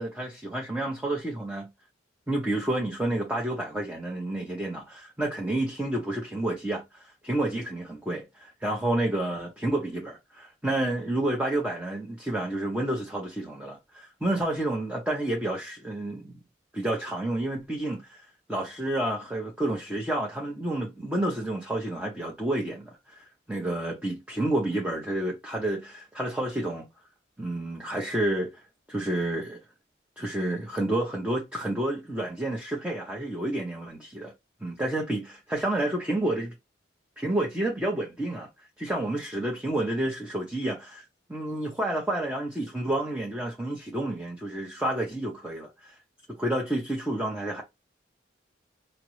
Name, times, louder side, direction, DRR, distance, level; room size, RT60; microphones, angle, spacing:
voice 1, 0.0-1.7 2.3-16.4 16.7-18.2 18.5-26.9 27.4-28.6 28.9-29.6 30.2-34.3 34.6-36.5 37.2-38.5 38.8-41.0 41.3-46.0 46.4-47.6, right 1 dB, 5° right, 0.6 m, -30 dB
5.0 x 2.0 x 3.0 m
head